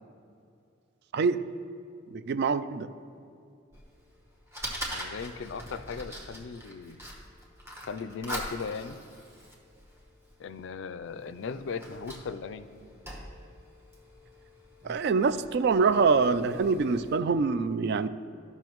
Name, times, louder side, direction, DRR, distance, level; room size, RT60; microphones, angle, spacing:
voice 1, 1.1-1.5 2.1-2.9 14.8-18.1, right 4 dB, 55° right, 13 dB, 0.3 m, -25 dB
Fire, 3.7-17.2, equal, 15° right, 1.0 m, -43 dB
voice 2, 4.9-7.0 7.9-9.0 10.4-12.7, left 5 dB, 65° left, 12 dB, 0.4 m, -37 dB
13.5 x 5.6 x 3.0 m, 2.5 s
head